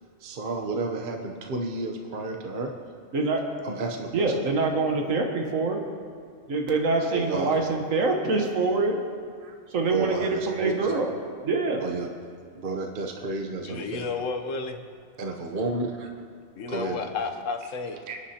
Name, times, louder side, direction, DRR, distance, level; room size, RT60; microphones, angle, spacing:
voice 1, 0.2-2.7 3.6-4.3 6.7-6.8 7.1-7.6 9.4-9.5 9.9-10.9 11.8-12.1 12.5-14.2 15.2-16.2 16.7-17.0 18.1-18.2, right 3 dB, 45° right, 3 dB, 0.9 m, -32 dB
voice 2, 3.1-3.6 4.1-5.8 6.5-9.0 9.7-11.1 11.4-11.8, right 3 dB, 90° right, 2 dB, 1.6 m, -25 dB
voice 3, 13.6-14.8 16.6-18.0, left 4 dB, 75° left, 6 dB, 1.2 m, -32 dB
23.5 x 10.0 x 2.8 m, 2.1 s
omnidirectional pair, 1.3 m